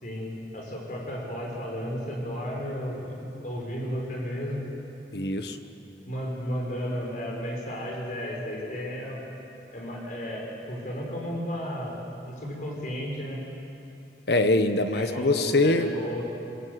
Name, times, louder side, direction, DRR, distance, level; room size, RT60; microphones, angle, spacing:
voice 1, 0.0-4.6 6.0-9.2 9.7-12.0 12.3-13.4 14.9-16.2, equal, 45° left, -2 dB, 5.6 m, -33 dB
voice 2, 5.1-5.6 14.3-15.9, left 2 dB, 65° left, 8 dB, 1.3 m, -23 dB
25.5 x 20.5 x 8.3 m, 2.8 s
head